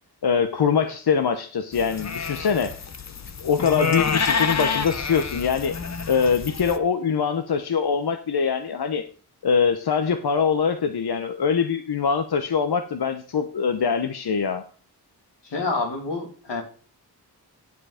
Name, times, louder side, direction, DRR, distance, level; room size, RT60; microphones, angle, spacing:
voice 1, 0.2-2.7 3.4-5.7 6.1-9.0 9.4-14.6, left 6 dB, 65° left, 7 dB, 0.9 m, -23 dB
sound 1, 1.7-6.8, left 5 dB, 40° left, 0.9 m, -28 dB
voice 2, 15.4-16.6, left 3 dB, 90° left, 2 dB, 2.7 m, -28 dB
9.5 x 7.7 x 4.9 m, 0.40 s
cardioid pair, 65°, 41 cm